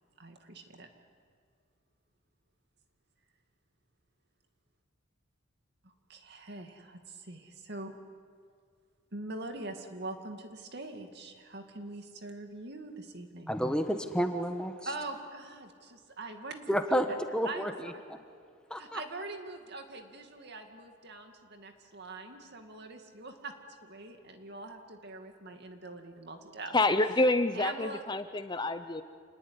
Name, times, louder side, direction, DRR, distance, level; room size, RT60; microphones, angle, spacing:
voice 1, 0.2-0.9 5.8-7.9 9.1-13.5 14.8-16.7 17.4-17.7 18.8-23.5 23.8-26.7 27.5-28.0, right 2 dB, 55° right, 5 dB, 2.4 m, -43 dB
voice 2, 13.5-14.7 16.7-17.1 17.3-17.9 18.7-19.0, equal, 5° left, 6 dB, 1.3 m, -30 dB
voice 3, 26.7-29.0, left 2 dB, 20° left, 10 dB, 0.7 m, -27 dB
28.0 x 19.5 x 9.8 m, 2.1 s
head